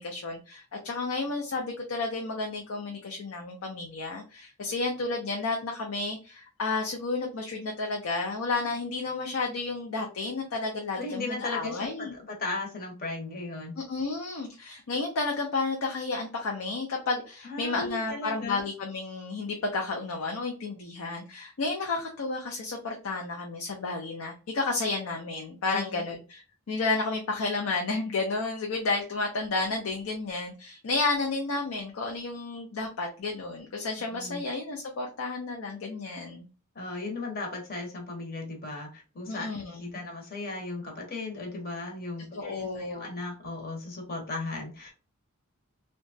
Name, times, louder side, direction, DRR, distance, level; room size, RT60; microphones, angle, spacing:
voice 1, 0.0-12.1 13.8-36.5 39.3-40.0 42.3-43.0, left 3 dB, 70° left, 1 dB, 0.5 m, -32 dB
voice 2, 11.0-13.7 17.4-18.6 25.7-26.1 34.1-34.4 36.7-44.9, left 3 dB, 45° left, 1 dB, 0.9 m, -36 dB
2.9 x 2.2 x 2.6 m, 0.34 s
head